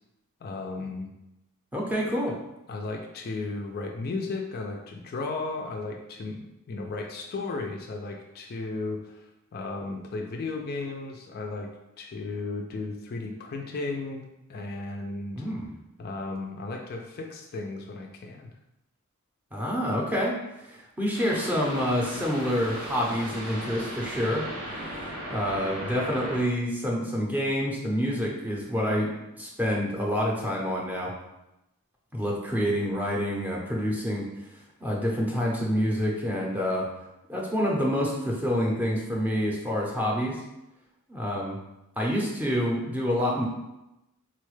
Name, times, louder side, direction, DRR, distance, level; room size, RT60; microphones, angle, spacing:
voice 1, 0.4-1.1 2.7-11.7 12.0-15.4 16.0-18.5, left 3 dB, 45° left, 2 dB, 0.3 m, -35 dB
voice 2, 1.7-2.3 15.4-15.7 19.5-24.4 25.3-29.1 29.4-31.1 32.1-34.3 34.8-36.9 37.3-40.4 41.1-41.6 42.0-43.4, equal, 10° right, -3 dB, 0.6 m, -27 dB
sound 1, 21.1-26.4, equal, 80° right, 0.9 m, -37 dB
3.9 x 2.1 x 3.1 m, 0.93 s
head